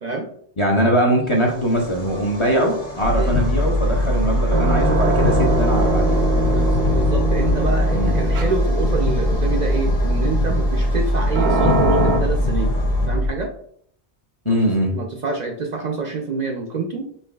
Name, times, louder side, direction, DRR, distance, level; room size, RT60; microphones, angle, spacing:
voice 1, 0.6-6.2 7.9-8.2 14.5-14.9, right 1 dB, 35° left, -1 dB, 0.6 m, -21 dB
sound 1, 1.2-13.1, left 1 dB, 60° left, 1.6 m, -36 dB
sound 2, 3.0-13.3, left 1 dB, 85° left, 0.9 m, -20 dB
sound 3, 4.5-12.2, right 3 dB, 70° right, 0.9 m, -24 dB
voice 2, 6.3-12.7 13.1-13.5 14.4-14.6 14.9-17.1, right 4 dB, 55° right, 2 dB, 0.5 m, -27 dB
5.5 x 3.0 x 2.3 m, 0.63 s
omnidirectional pair, 1.1 m